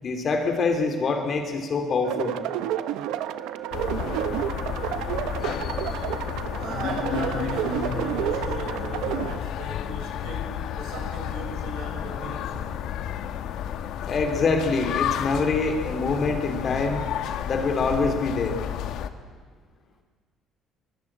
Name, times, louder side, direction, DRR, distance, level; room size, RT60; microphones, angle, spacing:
voice 1, 0.0-2.4 5.4-6.0 14.1-17.0 17.4-18.6, left 4 dB, 30° left, 5 dB, 2.9 m, -25 dB
sound 1, 2.0-9.4, right 11 dB, 90° right, 1.2 m, -30 dB
sound 2, 3.7-19.1, left 9 dB, 60° left, 1.5 m, -31 dB
voice 2, 6.6-12.7, right 4 dB, 65° right, 3 dB, 6.8 m, -38 dB
24.5 x 24.0 x 8.7 m, 1.5 s
cardioid pair, 175°, 0 cm